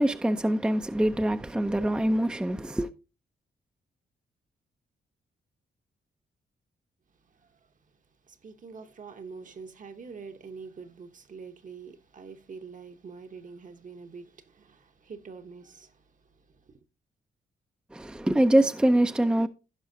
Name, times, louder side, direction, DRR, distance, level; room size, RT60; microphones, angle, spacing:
voice 1, 0.0-2.9 17.9-19.5, right 1 dB, 5° right, 0.5 m, -24 dB
voice 2, 7.2-7.6 8.3-16.7, right 5 dB, 45° right, 1.0 m, -45 dB
16.0 x 5.6 x 2.7 m
cardioid pair, 85°, 18 cm